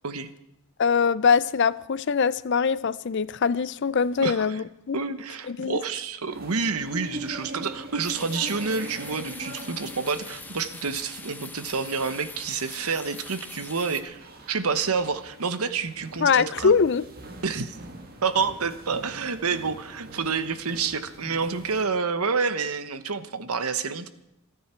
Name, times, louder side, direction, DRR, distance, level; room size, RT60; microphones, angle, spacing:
voice 1, 0.8-5.0 5.5-5.8 16.2-17.0, left 6 dB, 55° left, 0.5 m, -23 dB
voice 2, 4.2-4.6 4.9-16.7 17.4-17.8 18.2-24.1, right 5 dB, 90° right, 1.1 m, -28 dB
sound 1, 6.3-21.8, right 1 dB, 45° right, 1.9 m, -43 dB
sound 2, 8.0-14.0, left 3 dB, 10° left, 0.9 m, -43 dB
28.0 x 9.5 x 4.5 m
head